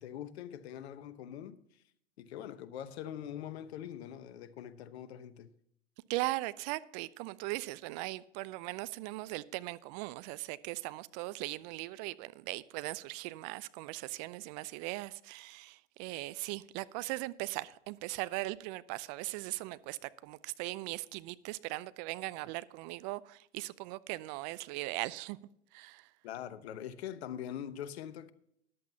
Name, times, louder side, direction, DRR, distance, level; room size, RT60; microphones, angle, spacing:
voice 1, 0.0-1.8 2.2-5.5 26.2-28.3, left 10 dB, 60° left, 1.1 m, -43 dB
voice 2, 6.1-25.4 25.7-26.1, right 20 dB, 35° right, 0.6 m, -39 dB
14.0 x 11.0 x 2.8 m
hypercardioid pair, 110°, 36 cm